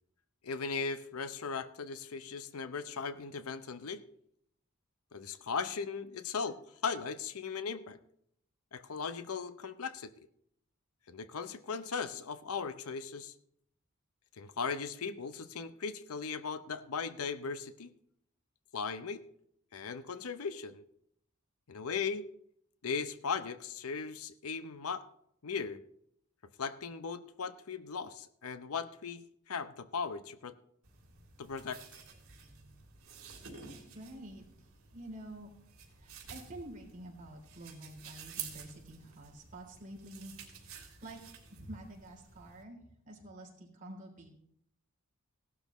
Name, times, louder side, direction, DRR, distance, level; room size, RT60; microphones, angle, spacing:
voice 1, 0.4-4.0 5.1-8.0 8.7-10.1 11.1-13.3 14.4-17.9 18.7-19.2 19.7-20.8 21.7-22.3 22.8-25.0 25.4-25.8 26.6-30.5 31.4-31.8, left 5 dB, 80° left, 12 dB, 0.7 m, -38 dB
sound 1, 30.8-42.6, right 7 dB, 70° right, 3.0 m, -51 dB
voice 2, 33.9-34.4 34.9-35.5 36.0-40.7 41.0-41.2 41.5-42.8 43.0-44.3, right 1 dB, 35° right, 0 dB, 3.4 m, -48 dB
17.0 x 12.0 x 3.1 m, 0.72 s
head